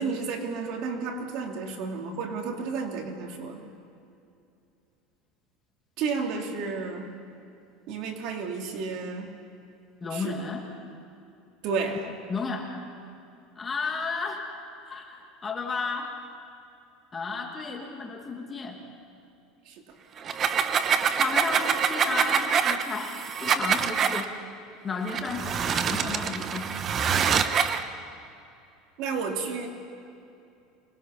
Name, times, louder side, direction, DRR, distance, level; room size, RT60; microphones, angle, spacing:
voice 1, 0.0-3.6 6.0-7.1 7.9-9.3 10.1-10.3 11.6-12.1 19.7-19.8 29.0-29.7, right 4 dB, 55° right, 2 dB, 2.6 m, -31 dB
voice 2, 10.0-10.6 12.0-12.8 13.6-14.5 14.9-16.1 17.1-18.8 21.2-24.3 24.8-26.7, left 4 dB, 20° left, 2 dB, 2.2 m, -33 dB
sound 1, 20.2-24.2 25.1-27.8, right 7 dB, 30° right, 0.9 m, -25 dB
25.0 x 20.0 x 5.7 m, 2.6 s
cardioid pair, 150°, 0 cm